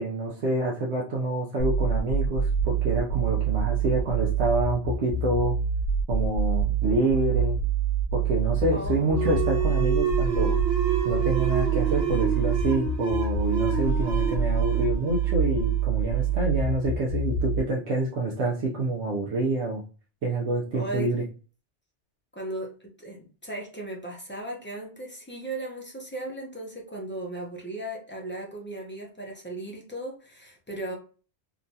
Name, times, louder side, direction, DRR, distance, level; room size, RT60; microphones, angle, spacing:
voice 1, 0.0-5.5 6.1-7.6 8.1-10.6 11.0-19.8 20.2-21.2, right 2 dB, 80° right, -3 dB, 1.0 m, -27 dB
sound 1, 1.6-17.6, right 6 dB, 70° left, 1.0 m, -26 dB
voice 2, 8.6-9.3 20.7-21.1 22.3-30.9, right 1 dB, 15° left, -2 dB, 0.5 m, -36 dB
sound 2, 9.1-16.3, right 7 dB, 15° right, 0.9 m, -29 dB
3.0 x 2.2 x 2.6 m, 0.37 s
omnidirectional pair, 1.1 m